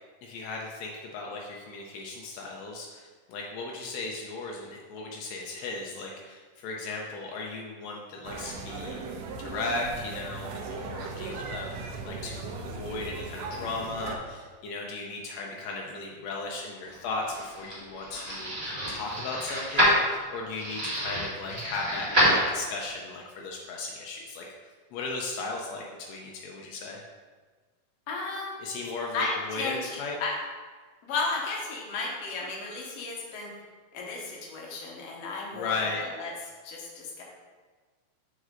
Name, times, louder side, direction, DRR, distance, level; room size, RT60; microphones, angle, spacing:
voice 1, 0.2-9.0 9.4-24.5 24.9-27.0 28.6-30.2 35.5-36.0, left 3 dB, 85° left, -1 dB, 1.5 m, -36 dB
sound 1, 8.2-14.2, right 4 dB, 80° right, 2.2 m, -38 dB
sound 2, 17.0-22.9, equal, 15° right, 1.4 m, -27 dB
voice 2, 28.1-28.6 29.1-30.4 31.0-33.5 33.9-36.3 36.6-37.2, left 3 dB, 65° left, -2 dB, 1.7 m, -34 dB
6.4 x 5.3 x 3.8 m, 1.4 s
omnidirectional pair, 3.9 m